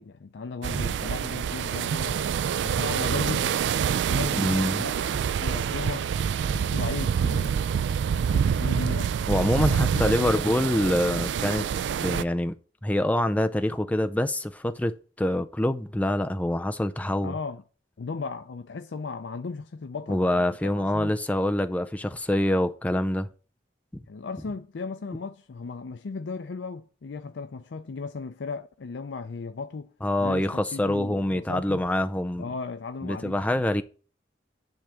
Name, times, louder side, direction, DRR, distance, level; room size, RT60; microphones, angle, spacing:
voice 1, 0.0-2.2 2.6-3.6 4.1-6.1 6.5-7.6 8.1-9.1 9.7-10.4 17.2-17.6 18.0-20.4 20.9-21.2 24.1-29.9 30.2-31.8 32.4-33.4, left 4 dB, 85° left, 0.5 m, -36 dB
sound 1, 0.6-12.2, right 7 dB, 80° right, 0.3 m, -26 dB
voice 2, 4.4-4.8 9.3-11.7 12.0-12.6 12.8-17.3 20.1-23.3 23.9-24.0 30.0-32.4 33.0-33.8, left 1 dB, 10° left, 0.4 m, -25 dB
10.5 x 3.5 x 6.2 m
head